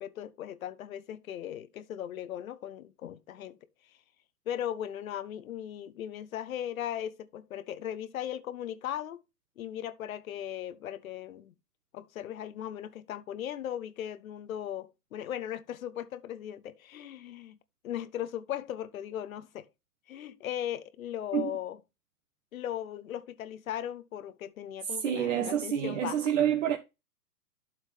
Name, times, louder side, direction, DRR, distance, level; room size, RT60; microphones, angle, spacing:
voice 1, 0.0-3.6 4.5-9.2 9.6-11.5 11.9-17.6 17.8-19.7 20.1-21.8 22.5-26.2, left 11 dB, 60° left, 1.2 m, -38 dB
voice 2, 24.8-26.8, right 9 dB, 50° right, 1.4 m, -28 dB
12.0 x 4.7 x 3.4 m
hypercardioid pair, 120°, 47 cm